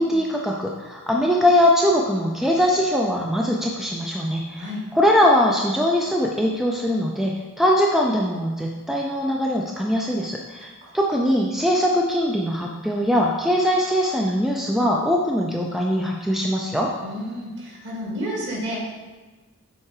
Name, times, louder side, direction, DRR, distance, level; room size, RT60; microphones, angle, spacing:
voice 1, 0.0-10.7 10.9-16.9, equal, ahead, -1 dB, 0.4 m, -21 dB
voice 2, 17.0-18.8, equal, 50° right, -4 dB, 2.3 m, -31 dB
7.3 x 4.7 x 4.8 m, 1.2 s
head